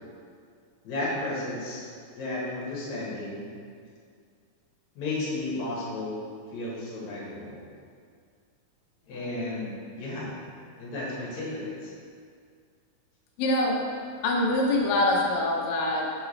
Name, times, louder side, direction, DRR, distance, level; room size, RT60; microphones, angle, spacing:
voice 1, 0.8-3.5 5.0-6.2 6.5-7.6 9.1-10.3 10.8-11.9, left 2 dB, 60° left, -6 dB, 2.6 m, -33 dB
voice 2, 13.4-13.8 14.2-16.1, left 1 dB, 80° left, -1 dB, 1.6 m, -24 dB
6.4 x 4.7 x 3.2 m, 2.2 s
omnidirectional pair, 3.9 m